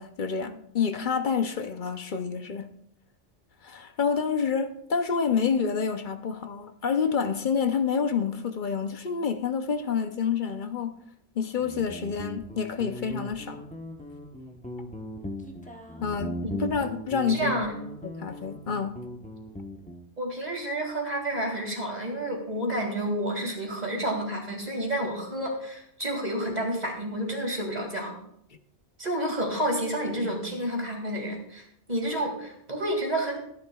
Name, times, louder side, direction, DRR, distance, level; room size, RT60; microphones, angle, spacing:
voice 1, 0.0-2.7 3.6-11.0 11.4-13.6 16.0-16.4 16.7-17.6 18.0-19.0, left 6 dB, 50° left, 0.7 m, -28 dB
Guitar, 11.6-20.1, left 1 dB, 5° left, 0.8 m, -38 dB
voice 2, 17.3-17.7 20.2-28.1 29.0-33.4, right 1 dB, 35° right, 2.3 m, -30 dB
15.5 x 10.0 x 2.3 m
omnidirectional pair, 1.2 m